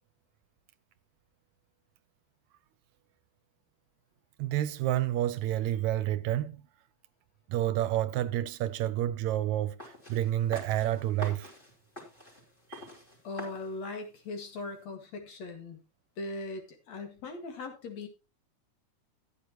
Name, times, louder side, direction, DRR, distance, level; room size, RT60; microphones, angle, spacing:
voice 1, 4.4-6.6 7.5-11.5 12.7-12.9, right 13 dB, 80° right, 2.0 m, -29 dB
sound 1, 9.8-14.8, left 1 dB, 15° left, 3.9 m, -47 dB
voice 2, 13.2-15.8 16.2-18.1, left 2 dB, 65° left, 3.2 m, -39 dB
13.5 x 10.0 x 3.0 m
omnidirectional pair, 3.4 m